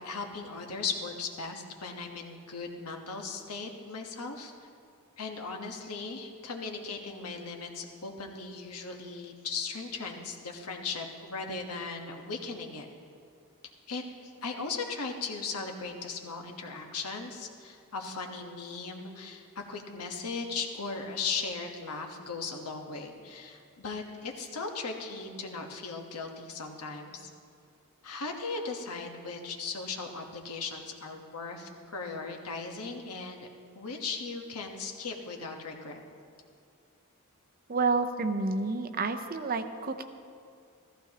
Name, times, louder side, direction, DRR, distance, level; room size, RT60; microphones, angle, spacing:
voice 1, 0.0-4.5 5.2-12.9 13.9-14.0 14.4-27.3 28.0-33.5 33.7-36.0, left 4 dB, 85° left, 3 dB, 1.2 m, -37 dB
voice 2, 37.7-40.0, right 3 dB, 40° right, 8 dB, 0.6 m, -29 dB
14.5 x 14.5 x 2.9 m, 2.3 s
head